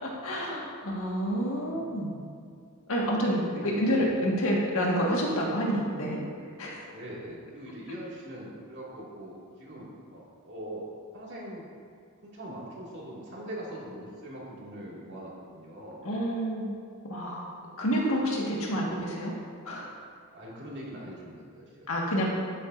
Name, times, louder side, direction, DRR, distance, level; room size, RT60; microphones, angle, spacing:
voice 1, 0.0-2.2 2.9-6.2 6.6-6.8 16.0-16.8 17.1-17.4 17.8-19.3 19.6-19.9 21.9-22.3, equal, 70° left, -3 dB, 1.7 m, -28 dB
voice 2, 3.0-4.0 6.9-10.9 11.1-11.6 12.2-16.1 20.3-21.9, right 1 dB, 55° right, -5 dB, 2.3 m, -42 dB
11.0 x 9.2 x 2.6 m, 2.2 s
head